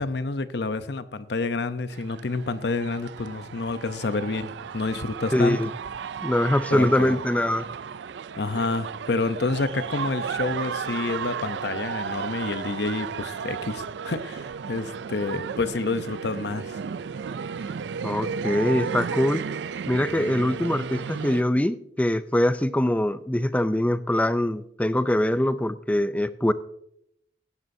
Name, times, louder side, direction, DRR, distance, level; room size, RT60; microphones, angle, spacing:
voice 1, 0.0-5.6 6.7-7.2 8.4-16.7, left 3 dB, 70° left, 12 dB, 0.7 m, -29 dB
sound 1, 1.9-21.4, right 6 dB, 80° right, 0.4 m, -34 dB
voice 2, 5.3-5.7 6.2-7.7 18.0-19.4 19.9-26.5, left 1 dB, 10° left, 13 dB, 0.4 m, -23 dB
16.5 x 11.0 x 2.7 m, 0.74 s
head